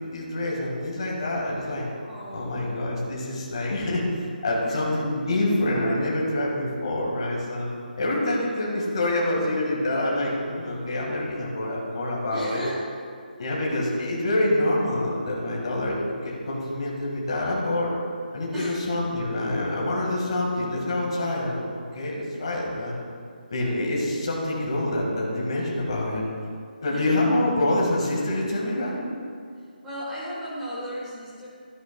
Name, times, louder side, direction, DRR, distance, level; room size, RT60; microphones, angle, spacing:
voice 1, 0.1-1.9 2.3-7.7 8.0-12.7 13.4-16.0 16.2-17.9 18.3-23.0 23.5-26.2 26.8-29.0, left 1 dB, 30° left, -3 dB, 1.7 m, -26 dB
voice 2, 2.0-2.8 4.6-5.0 12.3-12.8 18.5-18.8 26.9-27.3 29.8-31.5, equal, 5° right, -10 dB, 1.4 m, -36 dB
12.5 x 11.0 x 2.3 m, 2.2 s
hypercardioid pair, 180°, 5 cm